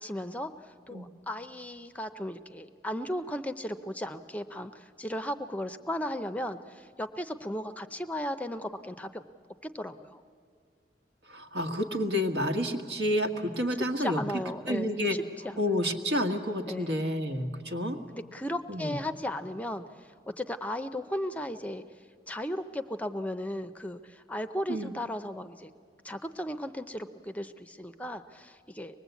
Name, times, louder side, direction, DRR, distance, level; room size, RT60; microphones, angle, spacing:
voice 1, 0.0-9.2 9.7-10.2 14.0-15.6 16.7-17.0 18.1-21.8 22.3-25.7 26.0-29.0, left 1 dB, 10° left, 10 dB, 0.5 m, -36 dB
voice 2, 11.3-14.2 14.7-15.2 15.6-18.0 18.7-19.0 24.7-24.9, equal, 80° right, 4 dB, 1.7 m, -29 dB
24.0 x 20.0 x 8.3 m, 2.1 s
head